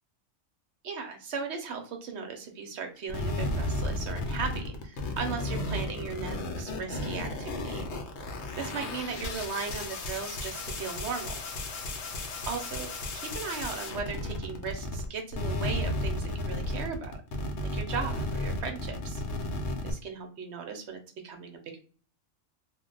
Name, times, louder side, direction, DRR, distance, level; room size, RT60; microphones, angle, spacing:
voice 1, 0.8-7.9 8.3-11.4 12.5-17.1 17.7-19.2 19.8-21.8, right 5 dB, 65° right, 5 dB, 0.9 m, -37 dB
sound 1, 3.1-15.1 15.3-19.9, left 1 dB, 65° left, 0.9 m, -33 dB
2.3 x 2.2 x 3.7 m, 0.42 s
omnidirectional pair, 1.3 m